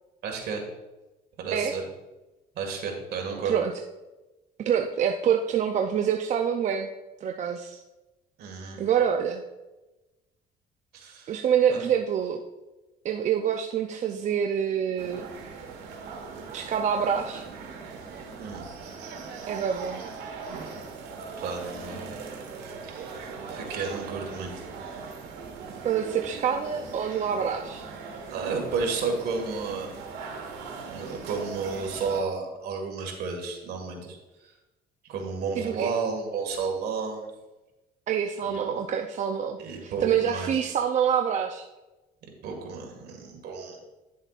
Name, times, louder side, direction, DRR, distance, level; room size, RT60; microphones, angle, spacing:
voice 1, 0.2-0.6 1.4-1.8 2.6-3.6 8.4-8.8 10.9-11.3 11.7-11.9 18.4-18.6 21.4-22.2 22.8-23.1 23.5-24.5 28.3-29.9 30.9-34.5 35.1-37.3 38.4-38.6 39.6-40.5 42.4-43.8, right 5 dB, 70° right, 2 dB, 1.8 m, -32 dB
voice 2, 4.6-6.9 7.2-7.8 8.8-9.4 11.3-12.4 13.0-15.3 16.5-17.4 19.5-20.0 25.8-27.9 35.6-35.9 38.1-41.7, right 8 dB, 45° right, 3 dB, 0.5 m, -26 dB
sound 1, 15.0-32.2, right 5 dB, 85° right, 1.4 m, -40 dB
10.0 x 7.2 x 2.4 m, 1.1 s
cardioid pair, 110°, 17 cm